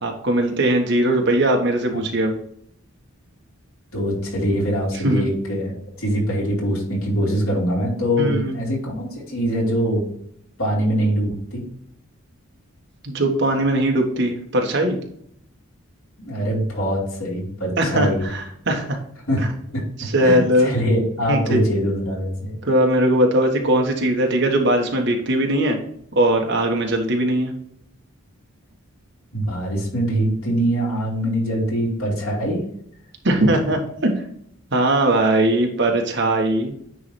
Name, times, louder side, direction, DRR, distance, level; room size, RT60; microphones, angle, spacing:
voice 1, 0.0-2.3 5.0-5.2 8.2-8.6 13.0-15.0 17.8-19.0 19.4-19.5 20.0-20.7 21.3-21.6 22.6-25.8 26.1-27.5 33.2-34.1 34.7-36.7, right 1 dB, 50° right, 2 dB, 1.3 m, -20 dB
voice 2, 3.9-5.7 6.0-10.0 10.6-11.6 16.2-18.2 19.3-19.8 20.2-22.5 29.3-32.6, equal, 85° left, -4 dB, 3.1 m, -23 dB
9.5 x 3.2 x 4.3 m, 0.69 s
head